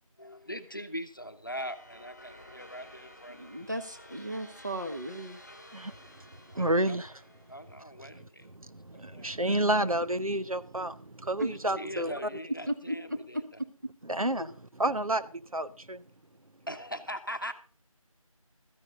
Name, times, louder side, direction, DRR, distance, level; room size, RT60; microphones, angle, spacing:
voice 1, 0.2-3.6 6.5-7.0 7.5-8.5 8.9-9.3 11.5-13.4 16.7-17.5, equal, 35° left, 1.0 m, -41 dB
sound 1, 1.6-7.8, equal, 5° left, 1.8 m, -52 dB
voice 2, 3.3-5.4 11.4-11.5 12.7-13.0 14.4-14.5, right 1 dB, 30° right, 1.4 m, -35 dB
voice 3, 6.5-7.1 8.1-8.3 8.5-12.1 14.1-16.0, right 1 dB, 70° right, 0.9 m, -30 dB
15.0 x 13.5 x 3.7 m
figure-of-eight pair, 175°, 19 cm